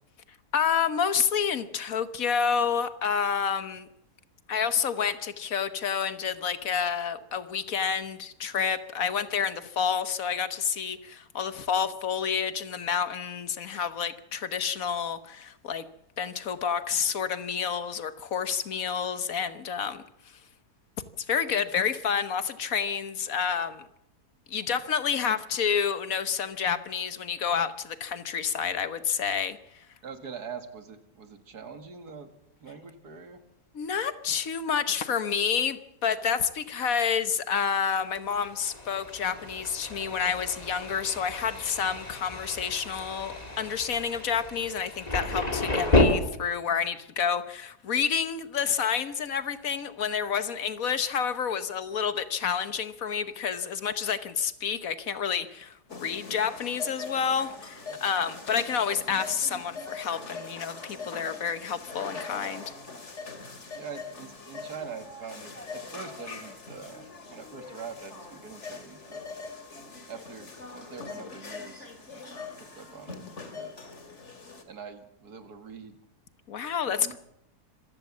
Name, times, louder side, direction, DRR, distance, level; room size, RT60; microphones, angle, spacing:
voice 1, 0.5-3.9 4.5-15.9 16.2-20.0 21.2-23.9 24.5-29.8 33.7-62.6 76.5-77.2, left 7 dB, 60° left, 1.5 m, -29 dB
voice 2, 30.0-32.3 32.6-33.4 57.5-57.6 57.9-58.0 63.8-69.2 70.1-73.2 73.5-73.7 74.7-76.0 76.9-77.2, right 6 dB, 75° right, 2.5 m, -44 dB
Thunder, 37.9-46.0, left 2 dB, 25° left, 2.8 m, -31 dB
sound 1, 55.9-74.6, left 4 dB, 45° left, 2.6 m, -42 dB
26.0 x 15.5 x 7.3 m
omnidirectional pair, 1.7 m